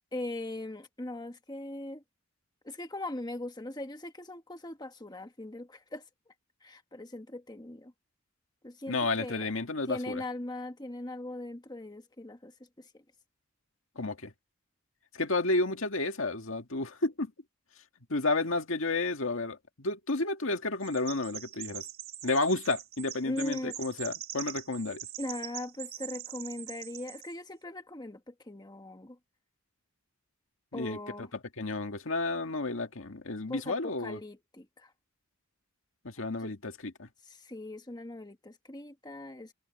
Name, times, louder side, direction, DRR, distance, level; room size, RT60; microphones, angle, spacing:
voice 1, 0.1-2.0 2.6-6.0 6.6-7.9 8.6-9.5 9.8-13.0 23.2-23.8 25.2-29.2 30.7-31.3 33.5-34.9 36.4-36.5 37.2-39.5, left 1 dB, 20° left, 1.3 m, -40 dB
voice 2, 8.9-10.2 14.0-14.3 15.1-17.3 18.1-21.8 22.2-25.0 30.7-31.3 31.6-34.2 36.0-37.1, left 2 dB, 75° left, 1.9 m, -31 dB
Chirp tweet, 20.8-27.3, right 11 dB, 50° right, 1.5 m, -43 dB
head